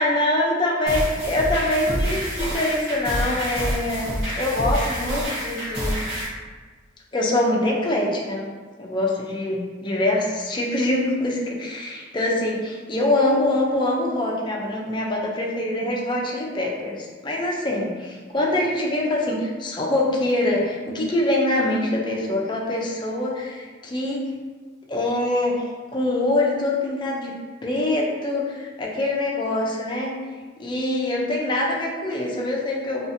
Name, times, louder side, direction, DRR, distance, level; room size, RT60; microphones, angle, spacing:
voice 1, 0.0-6.0 7.1-8.5 8.8-24.3 24.9-25.6 25.9-27.3 27.6-30.2 30.6-33.1, left 1 dB, 25° left, -2 dB, 0.4 m, -24 dB
sound 1, 0.9-6.3, equal, 60° right, 1.0 m, -27 dB
2.7 x 2.4 x 2.6 m, 1.4 s
head